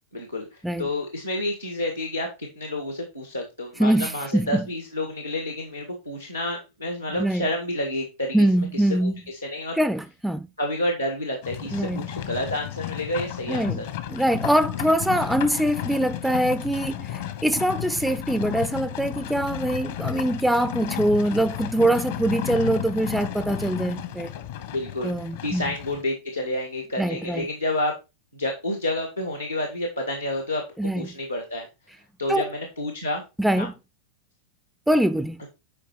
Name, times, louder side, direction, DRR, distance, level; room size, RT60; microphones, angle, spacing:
voice 1, 0.1-8.4 8.7-9.8 10.6-13.8 24.7-28.0 28.3-31.7 32.2-33.2 33.6-33.7, left 1 dB, 90° left, 1.8 m, -29 dB
voice 2, 3.8-4.7 7.2-7.5 8.3-9.2 9.8-10.5 11.7-12.1 13.5-13.8 14.1-24.3 25.0-25.6 27.0-27.5 30.8-31.1 32.3-32.5 33.4-33.7 34.9-35.4, right 1 dB, 5° right, 0.4 m, -23 dB
Livestock farm animals working animals, 11.4-26.0, left 12 dB, 55° left, 1.1 m, -33 dB
8.8 x 5.0 x 4.3 m
figure-of-eight pair, 90°, 0 cm